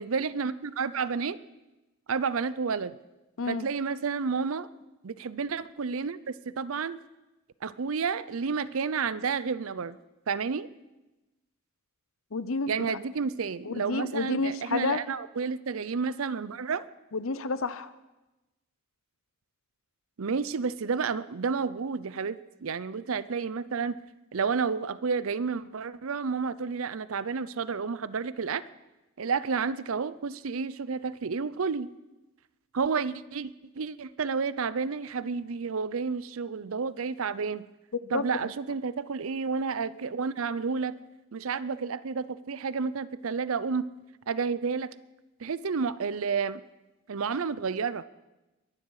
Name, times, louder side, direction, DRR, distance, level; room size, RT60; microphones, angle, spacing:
voice 1, 0.0-1.4 2.1-3.0 3.5-4.7 5.0-7.0 7.6-10.0 10.3-10.7 12.7-16.8 20.2-24.0 24.3-28.6 29.2-31.9 32.7-37.6 38.1-40.9 41.3-43.8 44.3-44.9 45.4-46.6 47.1-48.0, right 5 dB, 70° right, 17 dB, 0.6 m, -30 dB
voice 2, 12.3-13.0 13.6-15.0 17.1-17.9 38.0-38.5, left 3 dB, 70° left, 14 dB, 0.7 m, -30 dB
22.5 x 11.5 x 4.8 m, 1.1 s
head